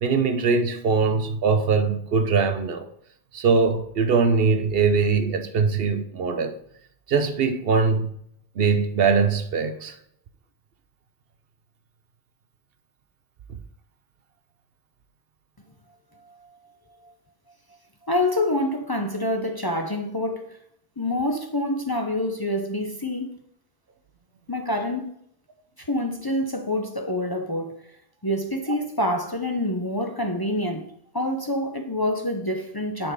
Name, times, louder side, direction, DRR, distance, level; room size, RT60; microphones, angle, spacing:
voice 1, 0.0-2.9 3.3-6.5 7.1-8.2 8.6-10.0, right 5 dB, 65° right, 0.9 m, -22 dB
voice 2, 18.1-20.6 21.0-23.4 24.5-25.1 25.8-27.9 28.2-33.1, left 1 dB, 25° left, 0.6 m, -27 dB
9.4 x 4.5 x 4.8 m
omnidirectional pair, 1.1 m